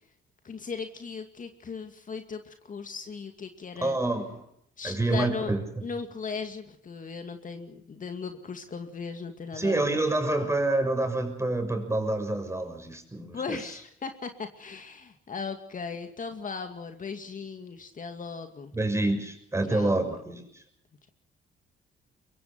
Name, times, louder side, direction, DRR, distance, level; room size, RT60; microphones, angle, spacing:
voice 1, 0.4-4.0 4.8-5.5 5.8-10.0 13.3-18.8 19.7-20.1, left 5 dB, 40° left, 7 dB, 2.3 m, -37 dB
voice 2, 3.8-4.4 4.8-5.8 9.5-13.6 18.7-20.6, right 2 dB, 15° right, 6 dB, 6.5 m, -27 dB
24.0 x 22.5 x 5.9 m, 0.70 s
cardioid pair, 90°, 20 cm